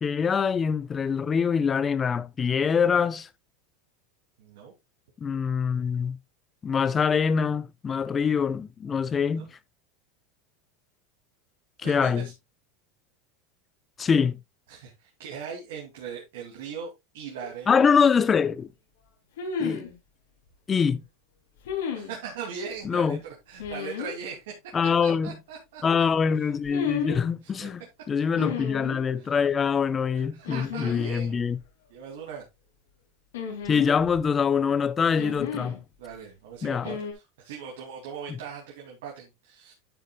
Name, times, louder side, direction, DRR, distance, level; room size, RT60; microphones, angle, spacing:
voice 1, 0.0-3.3 5.2-6.2 6.6-9.5 11.8-12.3 14.0-14.4 17.7-18.7 19.6-19.9 20.7-21.0 22.8-23.2 24.7-25.4 25.8-27.8 28.1-31.6 33.7-35.8 36.6-36.9, left 6 dB, 25° left, 0.7 m, -24 dB
voice 2, 4.4-4.7 8.1-8.2 9.3-9.5 11.8-12.3 14.7-17.7 21.9-23.2 23.5-24.6 25.0-25.8 26.4-26.5 27.4-27.7 29.2-29.3 30.1-31.5 31.9-32.4 36.0-39.7, right 6 dB, 80° right, 2.5 m, -40 dB
sound 1, 17.4-17.5 19.4-19.9 21.6-22.1 23.6-24.1 26.6-27.2 28.3-29.0 30.4-31.1 31.4-31.5 33.3-34.3 35.2-35.8 36.8-37.1, left 7 dB, 90° left, 3.1 m, -33 dB
11.0 x 7.9 x 2.3 m
supercardioid pair, 120°, 0 cm